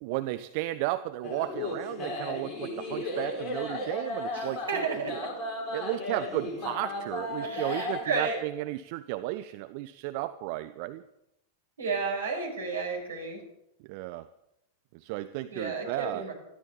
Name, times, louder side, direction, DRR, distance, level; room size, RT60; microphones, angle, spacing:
voice 1, 0.0-5.2 5.7-11.0 13.9-14.3 14.9-16.2, right 16 dB, 45° right, 13 dB, 0.6 m, -34 dB
sound 1, 1.2-8.0, left 2 dB, 25° left, 4.6 m, -35 dB
voice 2, 4.3-5.1 7.4-8.4 11.8-13.4 15.5-16.3, right 4 dB, 70° right, 0 dB, 5.5 m, -32 dB
21.0 x 14.5 x 4.1 m, 0.85 s
figure-of-eight pair, 90°, 0 cm